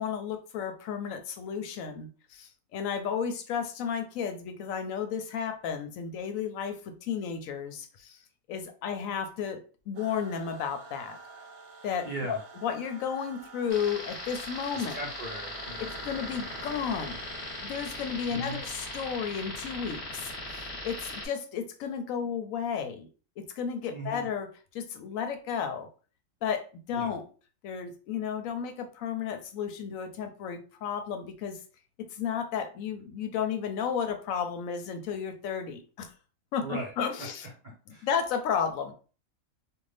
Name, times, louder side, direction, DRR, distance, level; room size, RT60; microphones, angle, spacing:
voice 1, 0.0-8.2 8.5-9.6 9.9-11.2 11.8-15.0 15.8-17.2 17.6-23.1 23.4-25.9 26.4-27.3 27.6-31.6 32.1-36.1 36.5-37.5 38.0-38.9, left 7 dB, 75° left, 7 dB, 0.9 m, -33 dB
sound 1, 9.9-19.2, right 5 dB, 80° right, 1.0 m, -49 dB
voice 2, 12.0-12.4 14.7-15.9 18.3-18.6 23.9-24.3 26.9-27.1 36.6-36.9 37.2-38.1, right 1 dB, 50° right, -2 dB, 0.6 m, -39 dB
sound 2, 13.7-21.3, left 1 dB, 35° left, 0.9 m, -39 dB
2.6 x 2.4 x 3.2 m, 0.37 s
omnidirectional pair, 1.5 m